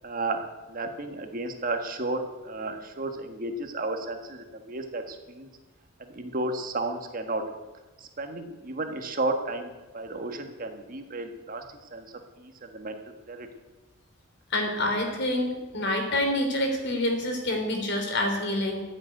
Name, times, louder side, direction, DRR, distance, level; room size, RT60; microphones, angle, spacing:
voice 1, 0.0-5.5 6.0-7.4 8.0-11.6 11.9-12.0 12.4-13.0 13.3-13.5, right 2 dB, 45° right, 5 dB, 1.6 m, -33 dB
voice 2, 14.5-18.8, left 1 dB, 55° left, 4 dB, 3.4 m, -27 dB
14.5 x 7.9 x 9.2 m, 1.2 s
head